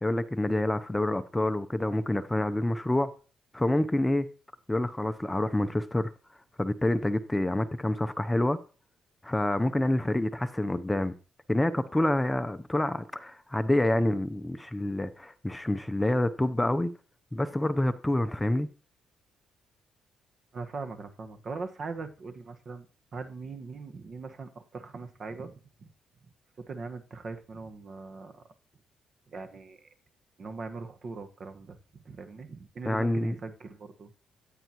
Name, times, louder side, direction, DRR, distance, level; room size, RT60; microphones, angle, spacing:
voice 1, 0.0-3.1 3.5-4.3 4.7-6.1 6.6-8.6 9.2-11.1 11.5-16.9 17.3-18.7 32.9-33.4, left 1 dB, 10° left, 0.6 m, -27 dB
voice 2, 20.5-22.9 23.1-25.9 26.6-28.4 29.3-29.9 30.4-34.1, right 4 dB, 45° right, 1.4 m, -41 dB
14.0 x 9.2 x 3.0 m
cardioid pair, 90°, 0 cm